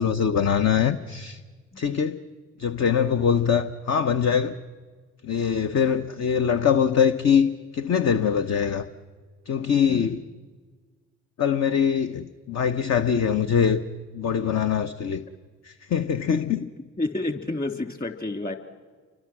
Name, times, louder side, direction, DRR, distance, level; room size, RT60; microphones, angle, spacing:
voice 1, 0.0-1.4 1.8-2.2 2.6-4.5 5.2-8.9 9.5-10.2 11.4-13.8 14.1-15.2 15.6-16.7, left 7 dB, 40° left, 10 dB, 1.1 m, -23 dB
voice 2, 9.9-10.2 14.4-14.5 17.0-18.6, left 2 dB, 20° left, 6 dB, 3.4 m, -30 dB
30.0 x 24.5 x 6.2 m, 1.5 s
hypercardioid pair, 55°, 40 cm